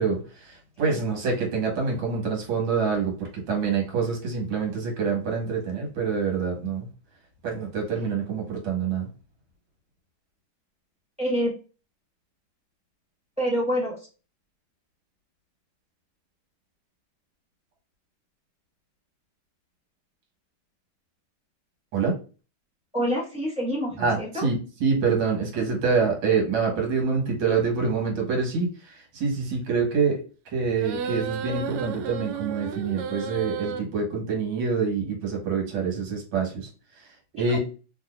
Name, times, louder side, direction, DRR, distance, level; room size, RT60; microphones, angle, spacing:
voice 1, 0.0-6.9 7.4-9.1 21.9-22.2 24.0-30.2 30.5-36.7 37.0-37.6, right 5 dB, 65° right, 0 dB, 1.9 m, -26 dB
voice 2, 11.2-11.5 13.4-14.1 22.9-24.5 37.4-37.6, equal, 5° right, -6 dB, 0.5 m, -27 dB
sound 1, 30.8-33.8, right 6 dB, 90° right, 1.5 m, -32 dB
3.6 x 2.6 x 2.4 m, 0.35 s
omnidirectional pair, 2.4 m